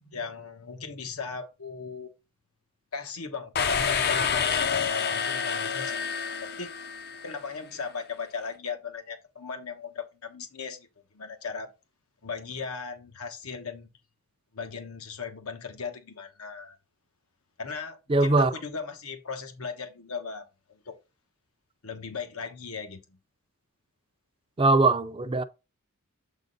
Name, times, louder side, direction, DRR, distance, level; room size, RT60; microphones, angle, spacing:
voice 1, 0.0-2.1 2.9-6.7 7.2-10.9 11.1-11.7 12.2-13.9 14.5-16.8 17.6-20.5 20.9-21.0 21.8-23.0, left 5 dB, 85° left, 1.2 m, -37 dB
sound 1, 3.5-7.3, left 6 dB, 45° left, 0.6 m, -28 dB
voice 2, 18.1-18.5 24.6-25.4, right 2 dB, 25° right, 0.4 m, -21 dB
7.6 x 3.8 x 3.9 m
head